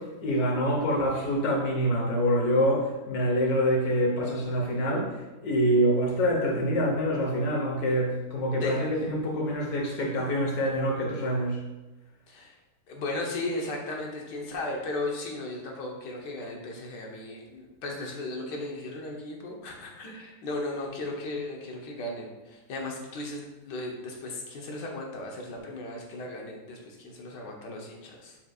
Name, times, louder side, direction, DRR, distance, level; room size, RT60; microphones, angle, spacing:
voice 1, 0.0-5.2 5.4-11.6, equal, 60° left, -1 dB, 1.7 m, -26 dB
voice 2, 12.9-28.4, left 2 dB, 85° left, 0 dB, 1.7 m, -36 dB
7.1 x 5.6 x 2.4 m, 1.1 s
omnidirectional pair, 1.8 m